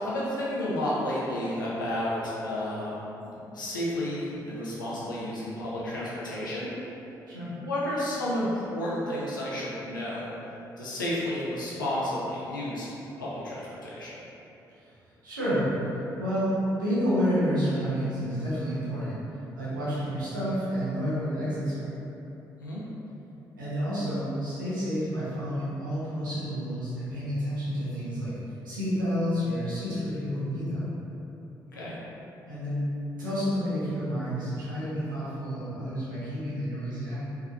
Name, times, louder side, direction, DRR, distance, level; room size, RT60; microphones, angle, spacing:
voice 1, 0.0-2.9 3.2-6.7 7.3-10.3 10.8-12.9 13.2-14.2 22.6-22.8 31.7-32.0, left 1 dB, 85° left, -7 dB, 0.5 m, -31 dB
voice 2, 15.2-15.7 16.2-19.2 19.6-21.9 23.6-28.3 28.6-30.9 32.5-32.8 33.2-37.2, equal, 85° right, -11 dB, 0.8 m, -29 dB
3.5 x 3.2 x 2.3 m, 3.0 s
figure-of-eight pair, 40°, 10 cm